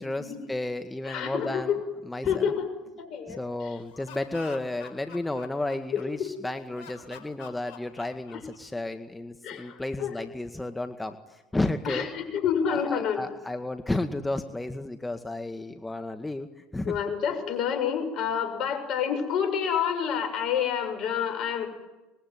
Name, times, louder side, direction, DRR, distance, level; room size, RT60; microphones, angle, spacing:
voice 1, 0.0-1.8 2.0-2.5 3.3-12.1 12.7-17.0, left 2 dB, 10° left, 7 dB, 1.9 m, -32 dB
voice 2, 1.1-1.8 2.2-2.7 3.0-3.4 6.2-6.3 8.3-8.4 9.4-10.1 11.9-13.3 16.9-21.7, left 7 dB, 55° left, 8 dB, 7.2 m, -28 dB
Laughter, 3.8-6.3 6.7-8.8, left 8 dB, 75° left, 4.7 m, -47 dB
25.5 x 22.0 x 9.7 m, 1.0 s
hypercardioid pair, 75°, 0 cm